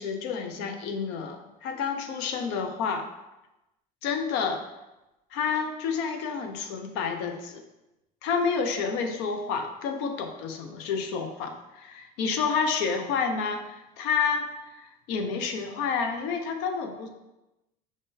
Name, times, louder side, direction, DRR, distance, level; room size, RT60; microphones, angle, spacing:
voice 1, 0.0-3.1 4.0-4.6 5.3-7.6 8.2-17.1, left 5 dB, 75° left, 6 dB, 0.6 m, -29 dB
5.0 x 2.6 x 3.7 m, 0.99 s
supercardioid pair, 90°, 18 cm